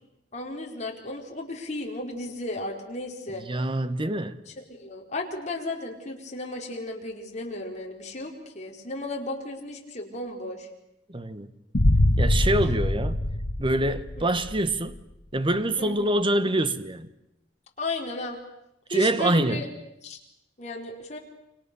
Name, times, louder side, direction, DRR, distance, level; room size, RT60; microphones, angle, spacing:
voice 1, 0.3-3.4 4.7-10.7 14.2-14.3 15.8-16.1 17.8-18.4 18.9-19.7 20.0-20.2 20.6-21.2, left 2 dB, 40° left, 4.6 m, -34 dB
voice 2, 3.3-4.4 11.1-11.5 12.2-13.2 13.6-15.0 15.3-17.1 18.9-19.7, right 1 dB, 30° right, 1.2 m, -25 dB
sound 1, 11.7-14.7, left 1 dB, 65° left, 1.6 m, -23 dB
29.5 x 26.0 x 7.0 m
head